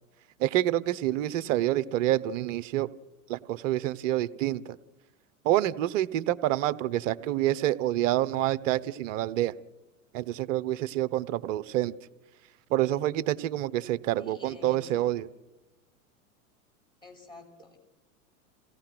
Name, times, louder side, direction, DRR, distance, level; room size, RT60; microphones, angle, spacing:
voice 1, 0.4-2.9 3.3-4.8 5.4-9.6 10.1-11.9 12.7-15.3, right 13 dB, 60° right, 16 dB, 1.0 m, -27 dB
voice 2, 14.1-15.1 17.0-17.8, left 3 dB, 10° left, 2 dB, 5.9 m, -48 dB
28.0 x 17.0 x 6.0 m, 1.0 s
hypercardioid pair, 105°, 43 cm